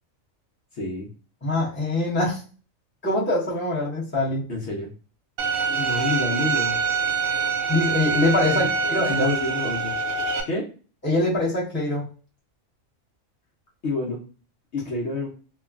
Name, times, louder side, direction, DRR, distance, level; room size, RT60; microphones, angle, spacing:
voice 1, 0.7-1.1 4.5-4.9 5.6-6.8 8.5-10.0 10.5-10.6 13.8-14.2 14.7-15.3, left 2 dB, 60° left, -1 dB, 0.9 m, -29 dB
voice 2, 1.4-2.4 3.0-4.4 7.7-9.3 11.0-12.0, left 2 dB, 10° left, -6 dB, 0.8 m, -23 dB
Bowed string instrument, 5.4-10.4, right 5 dB, 85° right, 1.0 m, -25 dB
3.1 x 2.2 x 2.3 m, 0.38 s
omnidirectional pair, 1.4 m